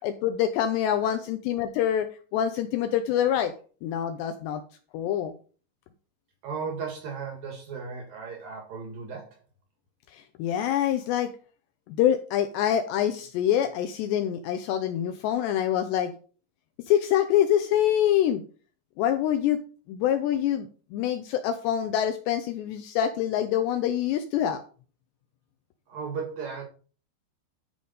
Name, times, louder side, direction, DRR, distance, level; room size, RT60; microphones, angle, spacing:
voice 1, 0.0-2.1 2.3-3.5 3.8-4.6 4.9-5.3 10.1-11.3 11.9-16.1 16.9-18.4 19.0-19.6 19.9-24.6, left 10 dB, 85° left, 8 dB, 2.5 m, -25 dB
voice 2, 6.4-9.4 25.9-26.7, right 5 dB, 55° right, 3 dB, 2.9 m, -36 dB
10.5 x 5.2 x 5.4 m, 0.39 s
omnidirectional pair, 5.6 m